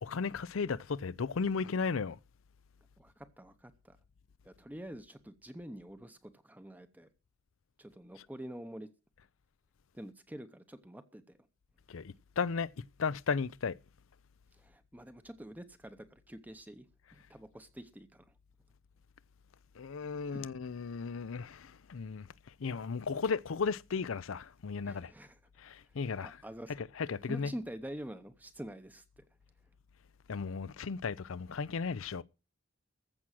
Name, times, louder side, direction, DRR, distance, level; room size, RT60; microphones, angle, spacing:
voice 1, 0.0-2.2 11.9-12.0 12.4-12.7 13.0-13.8 19.8-22.3 22.6-25.1 25.6-26.4 26.8-27.5 30.3-32.2, left 5 dB, 75° left, 0.5 m, -35 dB
voice 2, 3.0-4.0 4.4-7.1 7.8-8.9 9.9-11.4 14.6-16.9 17.1-18.3 20.0-20.5 24.8-25.4 26.2-26.7 27.2-29.2, right 1 dB, 10° right, 0.8 m, -47 dB
14.5 x 6.2 x 7.5 m
head